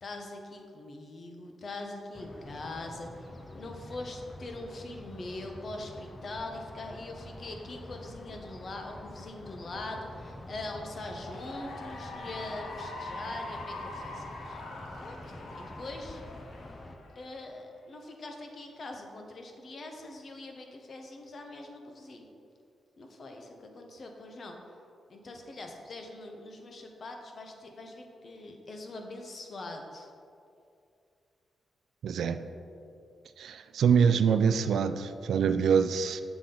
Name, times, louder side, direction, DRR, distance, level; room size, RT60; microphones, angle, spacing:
voice 1, 0.0-14.6 15.0-16.2 17.1-22.3 23.0-24.6 25.1-30.1, left 2 dB, 45° left, 3 dB, 0.8 m, -42 dB
sound 1, 2.1-17.0, left 1 dB, 20° left, 0.4 m, -47 dB
Cheering / Applause, 10.9-17.5, left 2 dB, 85° left, 0.8 m, -43 dB
voice 2, 32.0-32.4 33.4-36.2, right 6 dB, 80° right, 10 dB, 0.3 m, -25 dB
7.1 x 6.0 x 3.8 m, 2.5 s
wide cardioid pair, 130°, 0 cm